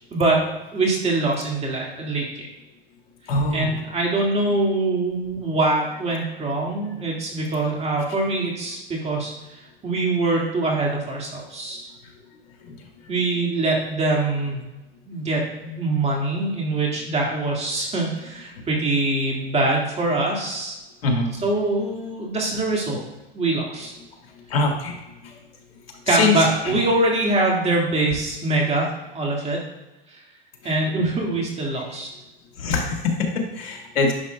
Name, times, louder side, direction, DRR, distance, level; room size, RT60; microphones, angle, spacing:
voice 1, 0.1-0.4 0.7-2.5 3.5-9.3 9.8-11.9 13.1-14.6 15.1-20.8 21.3-23.0 23.3-23.9 26.1-29.6 30.1-30.2 30.6-32.1, right 2 dB, 20° right, -1 dB, 1.8 m, -23 dB
voice 2, 3.3-3.7 21.0-21.3 24.5-25.0 26.1-26.3 32.6-34.1, left 3 dB, 80° left, 2 dB, 1.6 m, -22 dB
10.0 x 5.3 x 2.2 m, 1.0 s
hypercardioid pair, 110°, 30 cm